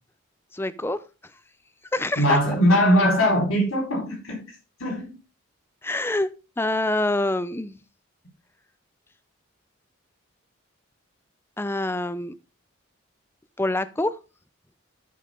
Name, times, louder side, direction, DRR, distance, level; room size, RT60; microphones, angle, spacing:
voice 1, 0.5-1.0 1.9-2.4 5.8-6.3 6.6-7.8 11.6-12.3 13.6-14.1, left 2 dB, 10° left, 0.5 m, -25 dB
voice 2, 2.2-4.4 4.8-5.1, equal, 85° left, 4.3 m, -21 dB
12.5 x 5.5 x 3.7 m
head